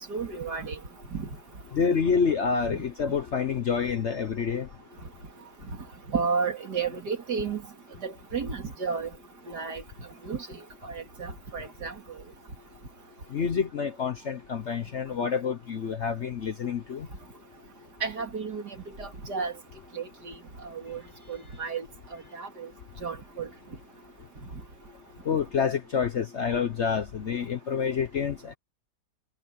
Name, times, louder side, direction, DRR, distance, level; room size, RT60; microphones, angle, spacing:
voice 1, 0.1-0.8 1.1-1.3 6.1-7.6 8.0-9.1 9.5-9.8 10.2-11.9 18.0-19.5 19.9-20.3 20.6-21.0 21.3-21.9 22.1-22.7 23.0-23.5, right 5 dB, 65° right, 3.2 m, -32 dB
voice 2, 1.7-4.7 13.3-17.1 25.2-28.5, left 6 dB, 50° left, 0.9 m, -28 dB
omnidirectional pair, 1.9 m